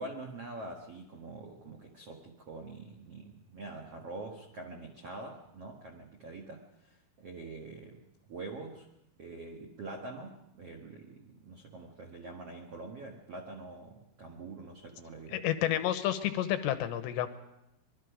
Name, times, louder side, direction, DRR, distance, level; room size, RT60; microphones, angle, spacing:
voice 1, 0.0-8.0 8.3-8.8 9.2-15.5, right 2 dB, 85° right, 2 dB, 1.3 m, -45 dB
voice 2, 15.3-17.3, left 12 dB, 75° left, 10 dB, 2.8 m, -30 dB
24.5 x 21.5 x 5.1 m, 0.84 s
omnidirectional pair, 5.6 m